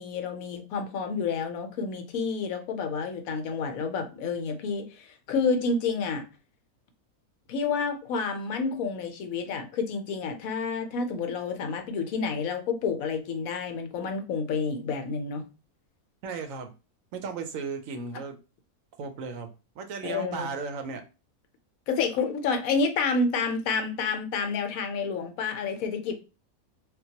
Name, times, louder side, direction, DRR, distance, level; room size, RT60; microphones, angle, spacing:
voice 1, 0.0-6.2 7.5-15.4 20.0-20.5 21.9-26.2, left 4 dB, 70° left, 1.0 m, -29 dB
voice 2, 16.2-16.7 17.1-18.4 19.0-19.5 19.8-21.0, right 5 dB, 70° right, 0.9 m, -35 dB
3.8 x 2.2 x 2.7 m
omnidirectional pair, 1.5 m